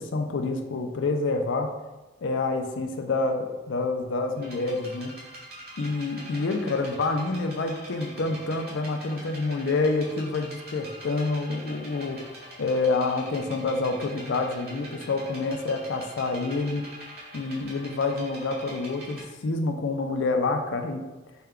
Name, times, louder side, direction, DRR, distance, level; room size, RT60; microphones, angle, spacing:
voice 1, 0.0-1.7 2.2-5.1 5.8-12.3 12.6-16.8 17.3-21.0, left 3 dB, 75° left, 5 dB, 0.4 m, -27 dB
sound 1, 4.4-19.2, right 1 dB, 50° right, 1.0 m, -44 dB
4.3 x 2.2 x 3.6 m, 1.1 s
head